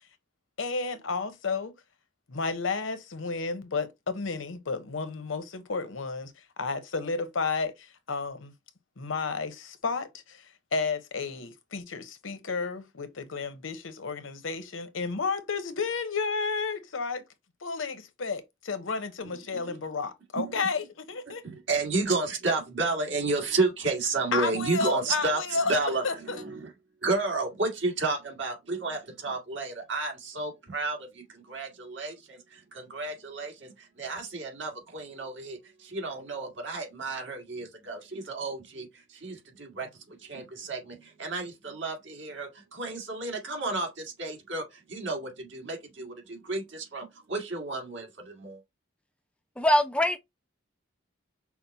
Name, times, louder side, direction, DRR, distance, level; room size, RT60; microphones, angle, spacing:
voice 1, 0.6-1.7 2.3-6.3 6.6-8.5 9.0-10.5 10.7-17.2 17.6-21.5 24.3-25.7 26.0-26.4, left 4 dB, 80° left, 0.8 m, -32 dB
voice 2, 21.3-26.7 27.0-48.6, right 3 dB, 65° right, 1.9 m, -32 dB
voice 3, 49.6-50.2, left 1 dB, 5° left, 0.3 m, -22 dB
5.8 x 2.1 x 4.0 m
head